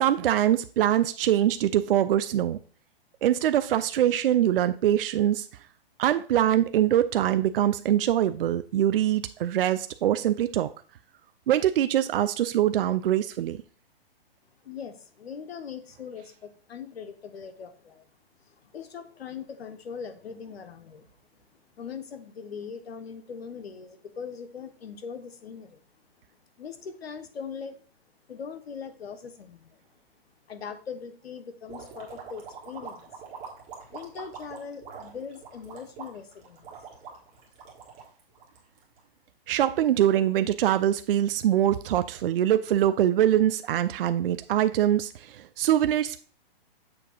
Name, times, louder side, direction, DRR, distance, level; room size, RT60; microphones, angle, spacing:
voice 1, 0.0-2.6 3.2-5.5 6.0-10.7 11.5-13.6 39.5-46.2, right 11 dB, 65° right, 0.5 m, -23 dB
voice 2, 14.6-18.1 18.4-21.1 21.3-21.4 21.8-25.8 26.6-27.8 28.3-29.8 30.5-33.1 33.9-36.7, left 6 dB, 90° left, 1.0 m, -40 dB
sound 1, 31.7-39.0, right 6 dB, 25° right, 1.5 m, -44 dB
6.9 x 2.8 x 5.2 m
hypercardioid pair, 145°, 30 cm